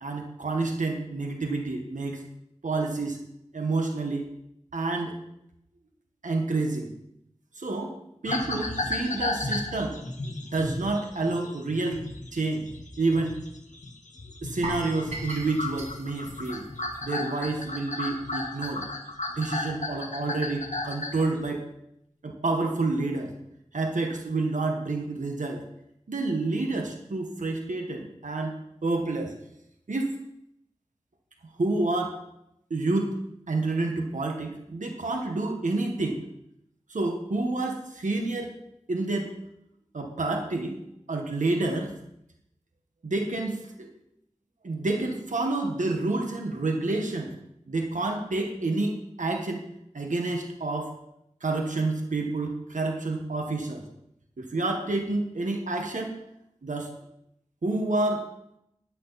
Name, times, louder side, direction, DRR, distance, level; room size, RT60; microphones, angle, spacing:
voice 1, 0.0-2.2 2.6-3.2 3.5-4.2 4.7-5.1 6.2-6.9 7.6-8.0 8.2-10.0 10.5-12.0 12.3-12.7 13.0-13.4 14.4-16.6 17.0-18.8 19.4-21.7 22.2-23.3 23.7-25.6 26.1-28.6 28.8-29.3 29.9-30.2 31.6-32.2 32.7-36.2 36.9-38.5 38.9-39.4 39.9-40.8 41.1-41.9 43.0-43.9 44.6-47.3 47.7-49.6 49.9-50.9 51.4-53.8 54.4-56.2 56.6-56.9 57.6-58.2, right 2 dB, 85° right, 2 dB, 1.5 m, -29 dB
sound 1, 8.3-14.7 15.0-21.3, left 2 dB, 75° left, 1.8 m, -34 dB
sound 2, 14.6-17.6 17.9-18.1 18.6-18.7, right 2 dB, 65° right, 3.6 m, -38 dB
13.0 x 11.5 x 4.2 m, 0.79 s
wide cardioid pair, 45°, 13 cm